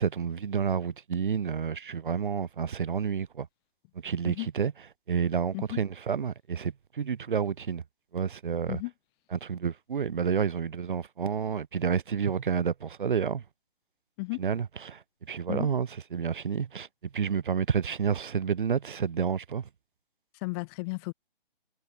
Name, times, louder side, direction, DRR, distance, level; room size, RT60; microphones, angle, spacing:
voice 1, 0.0-3.5 4.0-4.7 5.1-7.8 8.1-8.8 9.3-13.4 14.4-15.0 15.3-16.9 17.1-19.6, right 7 dB, 60° right, 1.5 m, -29 dB
voice 2, 20.3-21.1, left 27 dB, 25° left, 2.3 m, -34 dB
figure-of-eight pair, 135°, 29 cm